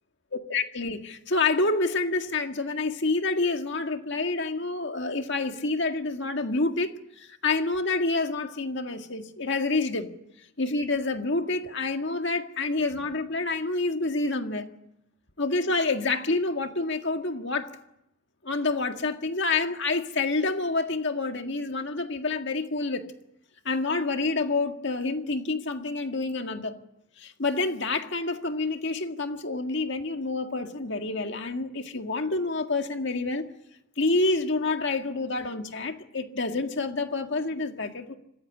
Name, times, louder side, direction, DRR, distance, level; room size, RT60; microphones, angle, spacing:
voice 1, 0.5-6.9 7.2-10.1 10.6-14.7 15.4-17.7 18.4-23.1 23.7-26.7 27.2-33.5 34.0-38.2, left 3 dB, 55° left, 6 dB, 1.9 m, -28 dB
25.5 x 16.0 x 9.8 m, 0.83 s
head